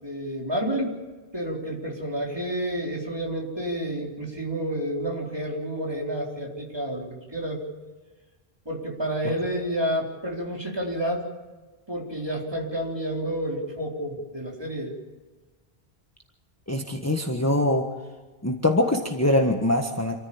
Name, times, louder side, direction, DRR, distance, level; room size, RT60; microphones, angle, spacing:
voice 1, 0.0-1.0 1.3-7.7 8.7-11.3 11.9-14.9, equal, 25° right, -2 dB, 4.3 m, -30 dB
voice 2, 16.7-17.9 18.4-20.2, left 1 dB, 15° left, 2 dB, 1.5 m, -23 dB
27.5 x 14.5 x 8.8 m, 1.3 s
omnidirectional pair, 1.0 m